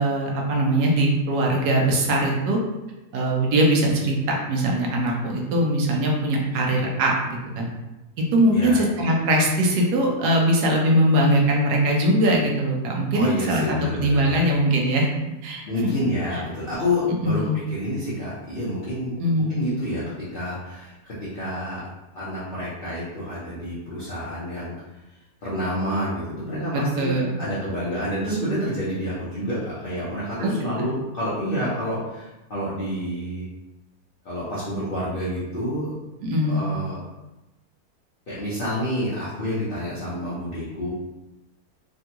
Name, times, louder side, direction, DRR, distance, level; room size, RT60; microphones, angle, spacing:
voice 1, 0.0-2.6 3.1-7.7 8.3-15.1 15.4-15.6 17.2-17.5 19.2-19.6 26.7-27.3 30.4-30.5 36.2-36.7, right 1 dB, 85° right, -1 dB, 1.2 m, -21 dB
voice 2, 13.1-14.4 15.7-19.1 19.5-21.8 22.1-24.9 25.4-33.5 34.2-35.9 36.5-37.0 38.3-40.9, equal, 45° left, -10 dB, 0.8 m, -28 dB
3.5 x 2.3 x 2.8 m, 1.0 s
omnidirectional pair, 1.7 m